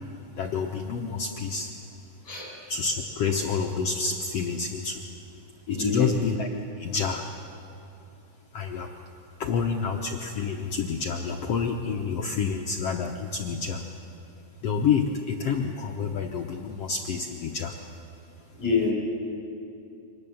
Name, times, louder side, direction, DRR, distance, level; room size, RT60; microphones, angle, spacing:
voice 1, 0.3-1.7 2.7-5.0 5.7-6.5 6.8-7.2 8.5-8.9 9.4-13.8 14.6-17.8, left 5 dB, 70° left, 2 dB, 1.5 m, -28 dB
voice 2, 2.2-2.5 5.7-6.1 18.5-18.9, left 5 dB, 15° left, -2 dB, 5.8 m, -26 dB
24.5 x 19.0 x 7.1 m, 2.7 s
omnidirectional pair, 4.0 m